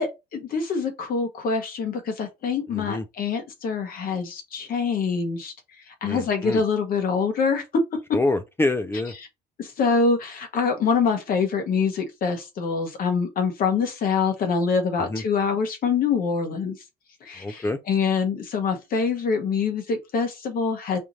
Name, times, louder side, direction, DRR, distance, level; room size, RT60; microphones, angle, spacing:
voice 1, 0.0-5.5 6.0-7.6 9.6-16.7 17.2-21.0, left 5 dB, 60° left, 1.4 m, -25 dB
voice 2, 2.7-3.0 6.0-6.6 8.1-9.1 15.1-15.2 17.4-17.8, left 2 dB, 15° left, 0.4 m, -26 dB
4.9 x 2.6 x 3.0 m
cardioid pair, 110°, 17 cm